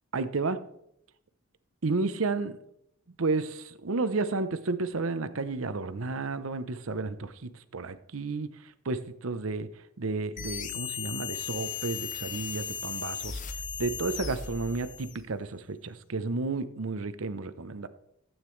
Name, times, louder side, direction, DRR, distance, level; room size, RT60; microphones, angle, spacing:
voice 1, 0.1-0.6 1.8-2.6 3.1-9.7 10.0-13.4 13.8-17.9, right 3 dB, 75° right, 12 dB, 0.7 m, -32 dB
sound 1, 10.4-15.2, left 7 dB, 40° left, 0.7 m, -36 dB
15.0 x 8.9 x 3.2 m, 0.77 s
head